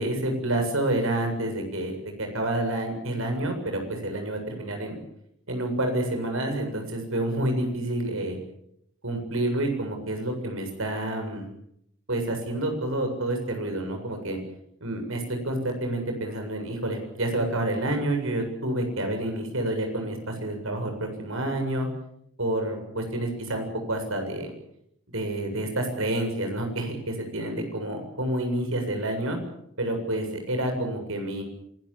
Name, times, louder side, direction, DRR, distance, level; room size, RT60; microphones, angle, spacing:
voice 1, 0.0-5.0 5.5-8.4 9.0-11.4 12.1-14.4 14.8-21.9 22.4-24.5 25.1-29.4 29.8-31.4, right 1 dB, 70° right, 5 dB, 7.6 m, -28 dB
27.5 x 21.0 x 7.4 m, 0.74 s
head